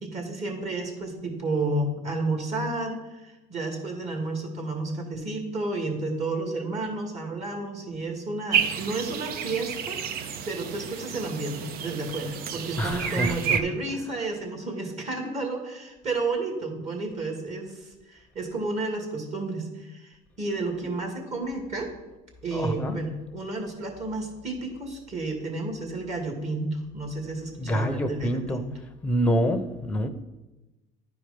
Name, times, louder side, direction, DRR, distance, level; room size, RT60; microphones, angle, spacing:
voice 1, 0.0-10.0 10.5-21.9 22.4-28.7, right 2 dB, 40° right, 3 dB, 2.2 m, -31 dB
sound 1, 8.5-13.6, right 8 dB, 60° right, 0.7 m, -30 dB
voice 2, 12.8-13.6 22.5-23.0 27.6-28.6 29.0-30.1, equal, 10° left, 7 dB, 0.7 m, -26 dB
11.0 x 4.6 x 5.2 m, 1.1 s
cardioid pair, 115°, 18 cm